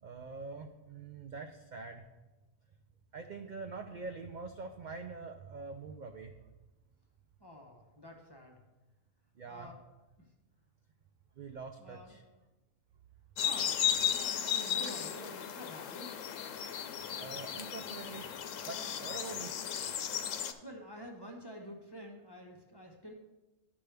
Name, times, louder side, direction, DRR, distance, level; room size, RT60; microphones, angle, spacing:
voice 1, 0.0-2.0 3.1-6.3 9.4-9.7 11.4-12.2 17.1-18.3 18.6-19.5, right 4 dB, 55° right, 5 dB, 0.5 m, -44 dB
voice 2, 7.4-8.6 9.5-9.8 10.2-10.3 11.8-12.2 13.4-16.2 20.6-23.1, equal, 20° left, 1 dB, 0.8 m, -49 dB
sound 1, 13.4-20.5, left 9 dB, 80° left, 1.0 m, -35 dB
12.0 x 5.2 x 3.4 m, 1.1 s
omnidirectional pair, 1.3 m